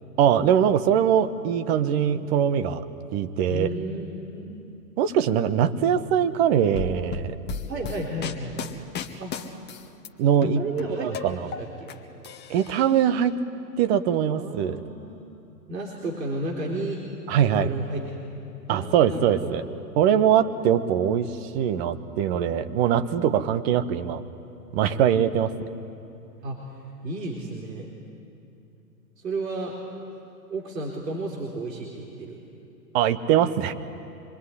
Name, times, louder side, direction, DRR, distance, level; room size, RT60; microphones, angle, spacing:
voice 1, 0.2-2.8 3.1-3.7 5.0-7.3 10.2-10.6 11.0-11.5 12.5-13.4 13.8-14.8 17.3-17.7 18.7-19.6 20.0-24.2 24.7-25.7 32.9-33.7, right 9 dB, 40° right, 10 dB, 1.3 m, -22 dB
voice 2, 3.5-4.5 7.7-8.5 9.2-9.3 10.5-11.2 11.6-11.9 14.3-15.2 15.7-17.0 17.6-18.0 18.7-19.5 26.4-26.6 27.0-27.9 29.2-29.7 30.5-32.4, right 2 dB, 75° right, -2 dB, 4.1 m, -32 dB
sound 1, 6.8-10.1 10.4-11.9 12.2-13.1, left 6 dB, 20° left, 1.4 m, -34 dB
25.5 x 22.5 x 9.9 m, 2.7 s
hypercardioid pair, 115°, 49 cm